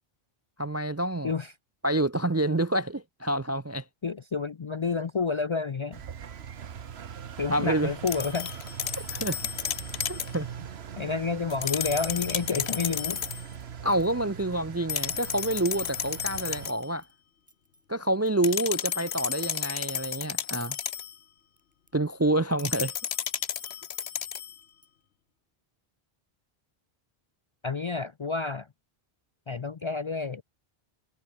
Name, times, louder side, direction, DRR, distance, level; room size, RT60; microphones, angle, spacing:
voice 1, 0.6-1.3 1.8-3.8 7.5-7.9 9.1-9.4 10.1-10.5 13.8-17.0 17.9-20.8 21.9-22.9, right 1 dB, 25° right, 0.3 m, -27 dB
voice 2, 4.0-6.0 7.4-8.5 11.0-13.2 27.6-28.7 29.5-30.4, left 4 dB, 40° left, 0.4 m, -30 dB
Engine, 5.9-16.7, right 8 dB, 85° right, 1.3 m, -41 dB
sound 1, 8.1-10.4 11.5-13.4 14.9-16.8 18.4-21.2 22.6-24.6, left 9 dB, 80° left, 1.1 m, -33 dB
sound 2, 13.2-18.3 18.6-19.6 20.1-21.9 22.2-25.0, equal, 5° right, 6.0 m, -62 dB
omnidirectional pair, 1.0 m